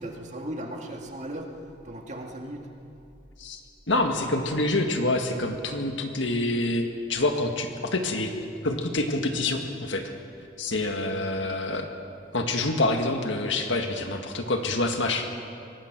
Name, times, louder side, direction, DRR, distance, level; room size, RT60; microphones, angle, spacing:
voice 1, 0.0-1.5 1.8-2.7, right 1 dB, 35° right, 2 dB, 2.0 m, -36 dB
voice 2, 3.9-6.8 7.1-8.3 8.6-10.1 10.6-11.9 12.3-15.3, left 2 dB, 70° left, 4 dB, 1.9 m, -26 dB
24.5 x 18.5 x 6.1 m, 2.5 s
head